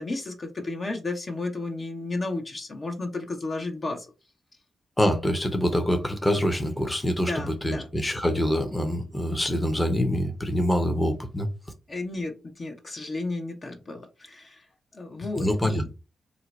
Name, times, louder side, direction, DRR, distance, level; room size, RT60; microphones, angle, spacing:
voice 1, 0.0-4.1 7.2-7.9 11.9-14.6 14.9-15.8, left 2 dB, 45° left, 0.8 m, -33 dB
voice 2, 5.0-11.5 15.4-15.8, equal, 15° left, 0.8 m, -25 dB
2.7 x 2.2 x 3.9 m
supercardioid pair, 45°, 0 cm